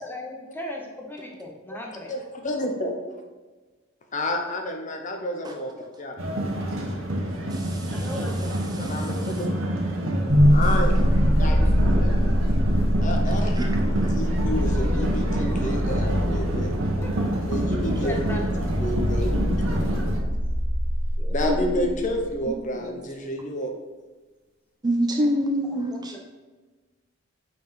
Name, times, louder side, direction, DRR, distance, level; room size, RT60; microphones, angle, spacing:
voice 1, 0.0-2.1 7.9-8.5 17.0-17.1 18.0-18.4 21.2-21.4 25.1-25.3 26.1-26.2, left 1 dB, 10° left, 0 dB, 0.9 m, -37 dB
voice 2, 2.1-3.2 4.1-5.7 6.0-6.3 8.8-9.3 10.5-11.0 11.3-12.1 13.0-16.7 17.5-20.0 21.3-23.7, left 1 dB, 40° left, 3 dB, 0.7 m, -30 dB
sound 1, 6.2-20.2, right 1 dB, 80° right, 1.1 m, -27 dB
voice 3, 7.5-8.1 8.7-9.4 13.5-13.7 14.0-14.1 17.9-18.0 21.4-21.7 22.5-22.6 24.8-26.2, equal, 20° right, 2 dB, 0.4 m, -27 dB
sound 2, 10.3-22.4, equal, 60° right, 1.4 m, -24 dB
5.6 x 4.1 x 4.6 m, 1.3 s
head